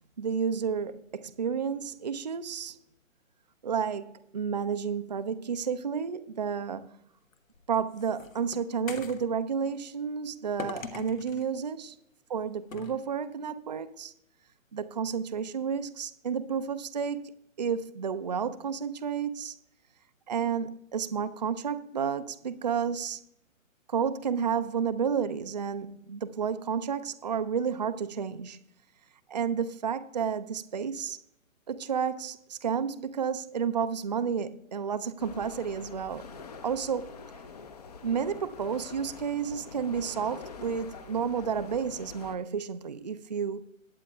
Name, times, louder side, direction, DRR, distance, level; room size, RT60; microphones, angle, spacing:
voice 1, 0.2-2.8 3.6-6.9 7.7-12.0 12.3-14.1 14.7-17.3 17.6-19.6 20.3-23.2 23.9-28.6 29.3-31.2 31.7-36.2 36.6-37.2 38.0-43.6, right 7 dB, 35° right, 0.4 m, -31 dB
sound 1, 7.3-9.3 10.6-11.5 12.7-13.0, left 5 dB, 75° left, 1.2 m, -41 dB
sound 2, 35.2-42.4, left 5 dB, 30° left, 0.6 m, -45 dB
19.5 x 8.9 x 2.2 m
figure-of-eight pair, 135°, 40 cm